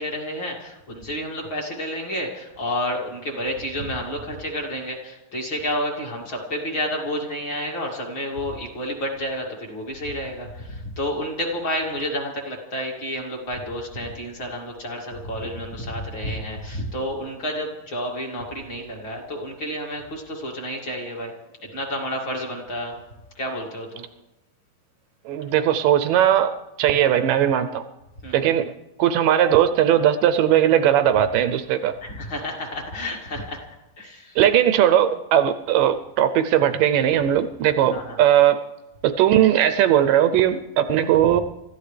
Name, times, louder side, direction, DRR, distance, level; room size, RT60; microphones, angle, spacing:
voice 1, 0.0-23.0 23.3-24.1 28.2-28.5 32.0-33.6 34.0-34.4 37.9-38.2 41.3-41.4, equal, 35° left, -1 dB, 2.6 m, -30 dB
voice 2, 25.3-27.8 28.3-28.7 29.0-31.9 34.4-38.6 39.0-41.4, right 10 dB, 80° right, 10 dB, 2.0 m, -19 dB
29.0 x 14.5 x 3.3 m, 1.0 s
omnidirectional pair, 4.4 m